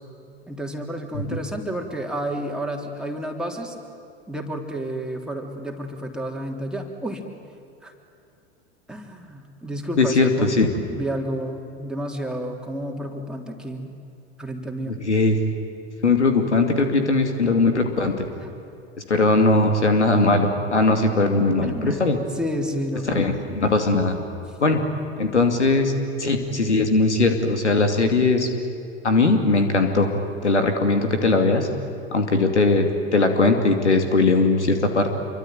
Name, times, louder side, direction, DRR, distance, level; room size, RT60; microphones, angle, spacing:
voice 1, 0.5-3.8 4.3-7.2 7.8-7.9 8.9-10.6 10.9-13.9 14.4-15.0 18.4-18.5 21.6-23.3, right 1 dB, ahead, 1 dB, 3.4 m, -30 dB
voice 2, 10.0-10.7 14.9-15.4 16.0-18.2 19.1-22.2 23.1-24.2 24.6-24.8 25.2-25.9 26.2-28.5 29.0-30.1 30.4-31.7 32.1-32.9 33.1-35.1, left 3 dB, 85° left, 6 dB, 2.6 m, -19 dB
27.0 x 24.0 x 9.2 m, 2.6 s
figure-of-eight pair, 90°, 33 cm